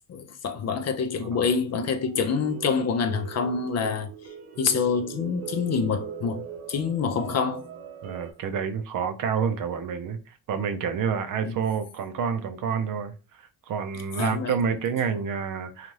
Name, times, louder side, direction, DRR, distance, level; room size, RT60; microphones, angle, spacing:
voice 1, 0.1-4.1 4.6-7.6 11.5-11.6 14.2-14.5, left 5 dB, 35° left, 0.5 m, -26 dB
sound 1, 1.6-8.3, right 9 dB, 85° right, 0.8 m, -40 dB
voice 2, 8.0-15.9, right 6 dB, 50° right, 0.5 m, -29 dB
2.6 x 2.4 x 3.0 m
supercardioid pair, 70°, 44 cm